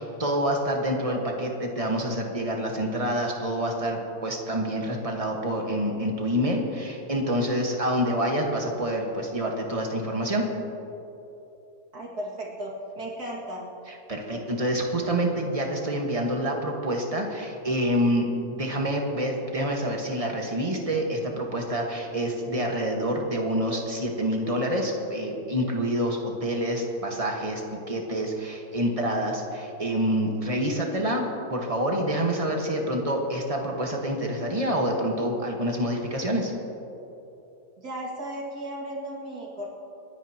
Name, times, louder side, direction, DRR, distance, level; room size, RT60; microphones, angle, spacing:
voice 1, 0.0-10.4 13.9-27.6 27.9-31.2 31.5-36.5, equal, 25° right, 1 dB, 1.5 m, -27 dB
voice 2, 11.9-13.7 37.8-39.7, right 1 dB, 85° right, -3 dB, 2.9 m, -35 dB
29.5 x 9.9 x 3.0 m, 2.9 s
omnidirectional pair, 1.6 m